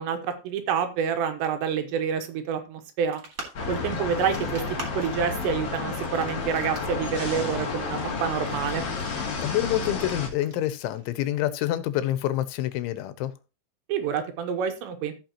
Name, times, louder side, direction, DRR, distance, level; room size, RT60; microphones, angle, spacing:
voice 1, 0.0-3.2 3.7-4.6 5.0-8.8 13.9-15.1, right 7 dB, 75° right, 3.2 m, -28 dB
sound 1, 3.1-11.4, right 1 dB, 20° right, 2.9 m, -45 dB
sound 2, 3.5-10.3, left 4 dB, 45° left, 2.1 m, -31 dB
voice 2, 9.4-13.3, left 13 dB, 90° left, 3.2 m, -27 dB
16.0 x 5.7 x 3.0 m
omnidirectional pair, 5.3 m